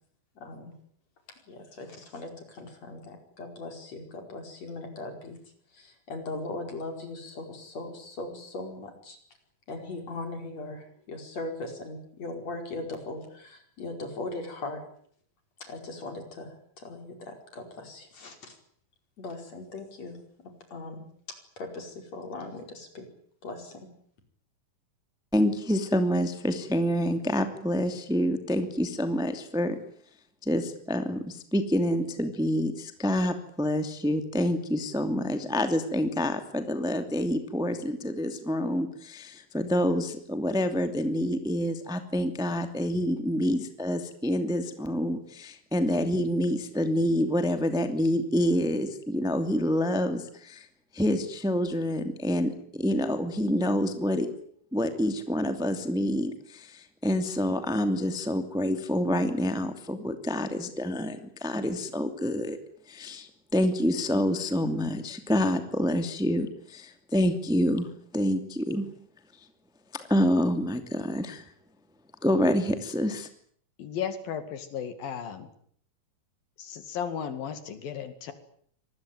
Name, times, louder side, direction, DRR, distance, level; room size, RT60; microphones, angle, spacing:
voice 1, 0.4-0.7 1.5-5.4 5.7-9.2 9.7-14.8 15.6-18.6 19.2-20.2 20.7-21.0 21.6-23.1 23.4-23.9, left 2 dB, 45° left, 5 dB, 5.9 m, -39 dB
voice 2, 25.3-29.8 30.4-50.7 50.9-54.3 54.7-62.6 62.9-67.9 68.1-68.9 70.1-71.5 72.2-73.3, equal, ahead, 8 dB, 1.9 m, -27 dB
voice 3, 73.8-75.5 76.6-78.3, left 8 dB, 75° left, 10 dB, 3.9 m, -35 dB
26.0 x 20.5 x 9.4 m, 0.62 s
omnidirectional pair, 4.1 m